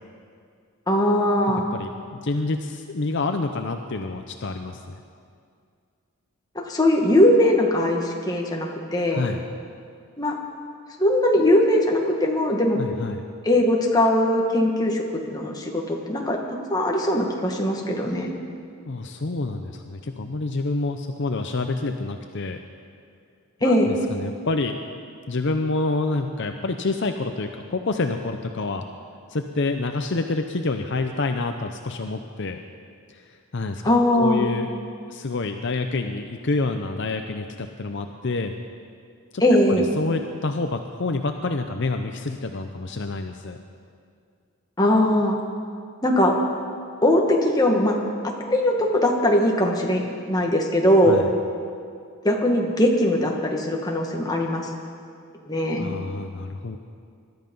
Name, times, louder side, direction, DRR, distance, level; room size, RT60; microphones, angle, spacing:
voice 1, 0.9-1.6 6.5-9.2 10.2-10.4 11.0-12.8 13.4-16.4 16.7-18.3 23.6-23.9 33.8-34.5 39.4-39.8 44.8-45.4 46.0-46.4 47.0-47.9 48.2-51.2 52.2-54.6 55.4-55.9, left 1 dB, 15° left, 0 dB, 1.7 m, -20 dB
voice 2, 1.7-4.9 9.1-9.4 12.7-13.2 18.9-22.6 23.6-24.8 25.3-28.8 29.3-32.6 33.1-33.8 34.2-34.7 35.1-38.5 39.3-39.4 39.7-43.6 51.0-51.3 55.7-56.8, left 3 dB, 55° left, 6 dB, 0.7 m, -28 dB
21.0 x 12.5 x 5.4 m, 2.3 s
head